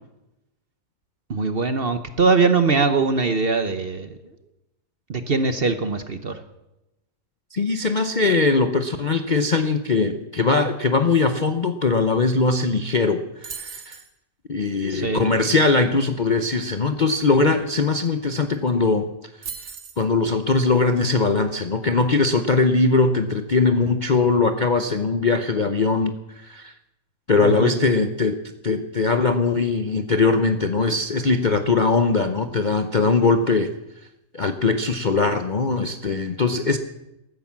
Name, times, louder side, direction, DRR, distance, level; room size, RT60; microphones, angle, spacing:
voice 1, 1.3-4.2 5.1-6.4 14.9-15.2 27.4-27.8, right 4 dB, 40° right, 9 dB, 1.0 m, -22 dB
voice 2, 7.5-14.0 14.5-19.1 19.4-19.7 20.0-26.7 27.3-28.4 28.6-33.7 34.3-36.8, left 3 dB, 45° left, 8 dB, 0.6 m, -21 dB
sound 1, 13.4-14.1 18.1-18.2 18.4-18.7 19.4-20.1, right 6 dB, 60° right, 2.0 m, -36 dB
14.0 x 13.5 x 7.4 m, 0.92 s
omnidirectional pair, 1.8 m